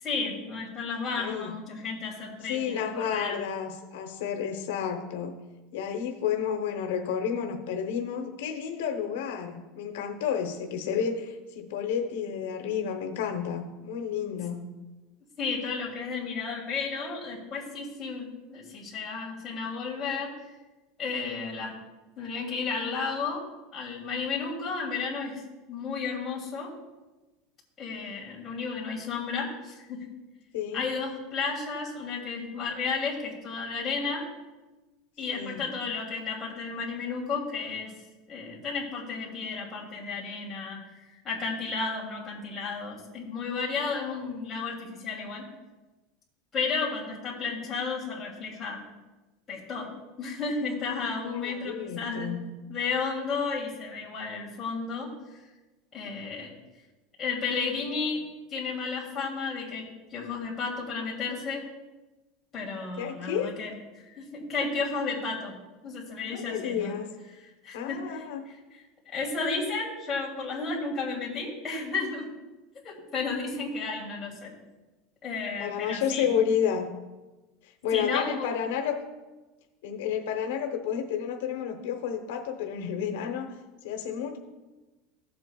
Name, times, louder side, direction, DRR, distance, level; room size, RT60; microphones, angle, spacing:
voice 1, 0.0-3.4 15.4-20.3 21.0-21.7 22.2-23.4 23.7-25.4 25.7-26.7 27.8-30.0 30.7-34.2 35.2-37.9 38.3-45.5 46.5-48.8 49.5-49.9 50.2-52.4 52.7-55.4 55.9-56.5 57.2-58.2 58.5-61.6 62.5-63.7 64.0-65.5 65.8-67.0 67.6-68.2 68.7-72.3 72.8-74.5 75.2-76.3 77.9-78.5, left 4 dB, 20° left, -4 dB, 2.7 m, -33 dB
voice 2, 1.2-1.6 2.5-5.4 5.7-14.6 30.5-30.9 35.3-35.7 51.3-52.4 63.0-63.5 66.3-67.1 67.7-68.4 75.6-76.9 77.6-79.0 79.8-83.5 83.8-84.4, left 8 dB, 90° left, 4 dB, 0.9 m, -31 dB
15.0 x 7.7 x 2.3 m, 1.2 s
supercardioid pair, 165°, 0 cm